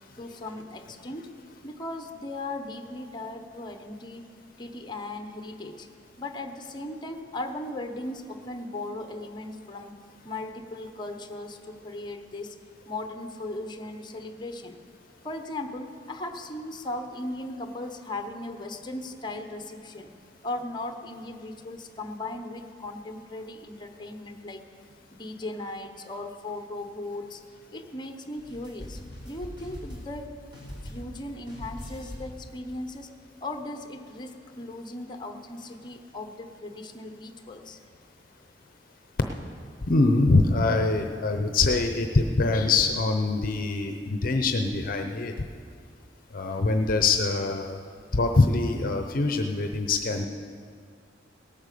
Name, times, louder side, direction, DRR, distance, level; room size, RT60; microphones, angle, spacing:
voice 1, 0.2-1.3 1.6-4.3 4.6-5.9 6.2-9.9 10.2-12.6 12.9-14.8 15.2-20.1 20.4-24.6 25.1-27.4 27.7-30.3 30.8-33.1 33.4-37.8, left 2 dB, 25° left, 6 dB, 1.0 m, -37 dB
sound 1, 28.4-30.3 30.5-31.2 31.5-32.4, equal, 25° right, 4.1 m, -41 dB
voice 2, 39.8-45.5 46.3-47.8 48.1-50.3, left 3 dB, 50° left, 5 dB, 0.7 m, -24 dB
18.0 x 8.8 x 6.7 m, 2.2 s
head